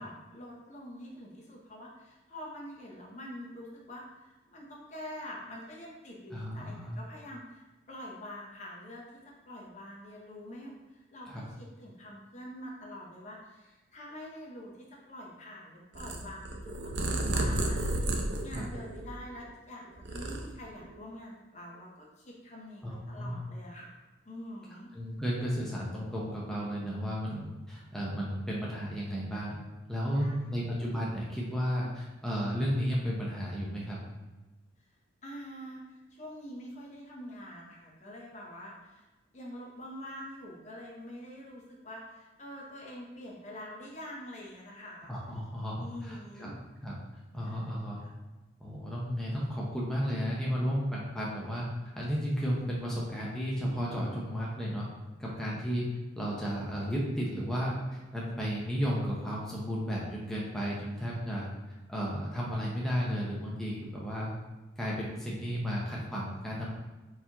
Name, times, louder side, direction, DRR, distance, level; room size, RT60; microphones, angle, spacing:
voice 1, 0.0-18.2 18.4-24.0 24.2-24.9 30.1-30.6 35.2-39.1 39.3-45.1 45.8-46.5 47.4-48.1, left 1 dB, 35° left, -2 dB, 0.7 m, -46 dB
voice 2, 6.3-7.0 11.3-11.4 18.5-18.7 22.8-23.4 24.9-29.6 29.9-34.0 45.1-46.9 47.3-48.0 48.6-51.7 52.0-54.9 55.2-55.8 56.2-61.5 61.9-64.3 64.8-66.7, equal, 5° left, -5 dB, 0.7 m, -33 dB
Purr, 15.9-19.5 19.9-21.0, right 1 dB, 60° right, 0.6 m, -32 dB
4.4 x 4.2 x 2.8 m, 1.2 s
head